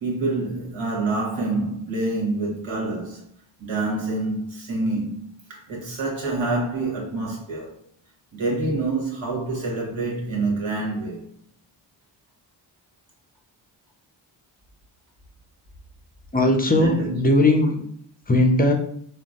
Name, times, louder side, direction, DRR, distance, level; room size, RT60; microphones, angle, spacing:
voice 1, 0.0-3.2 3.6-5.2 5.5-7.7 8.3-11.2 16.7-17.4, right 2 dB, 65° right, 1.3 m, -27 dB
voice 2, 16.3-17.8 18.3-18.7, left 1 dB, 20° left, 0.6 m, -18 dB
3.7 x 2.1 x 2.4 m
supercardioid pair, 50°, 50 cm